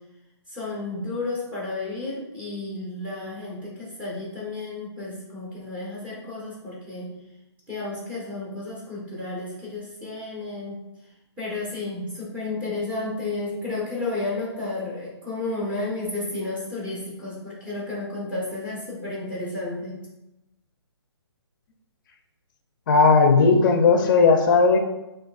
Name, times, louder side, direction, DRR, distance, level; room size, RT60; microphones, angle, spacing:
voice 1, 0.5-7.1 7.7-10.8 11.4-20.0, left 2 dB, 10° right, -7 dB, 1.2 m, -32 dB
voice 2, 22.9-24.8, left 4 dB, 45° left, 5 dB, 0.5 m, -16 dB
5.9 x 2.5 x 2.4 m, 0.95 s
hypercardioid pair, 150°, 15 cm